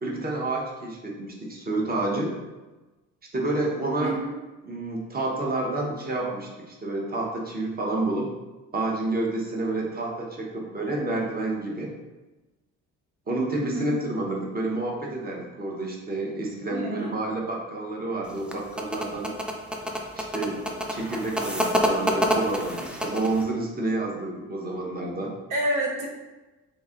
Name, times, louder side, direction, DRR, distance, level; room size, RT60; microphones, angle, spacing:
voice 1, 0.0-2.3 3.3-4.2 4.6-8.3 8.7-11.9 13.3-19.3 20.2-25.3, right 2 dB, 30° right, -1 dB, 0.9 m, -29 dB
voice 2, 13.6-13.9 16.7-17.2 25.5-26.1, right 1 dB, 85° right, -1 dB, 0.7 m, -29 dB
sound 1, 18.3-23.4, equal, 5° right, 0.4 m, -27 dB
3.1 x 2.7 x 3.6 m, 1.1 s
cardioid pair, 90°, 30 cm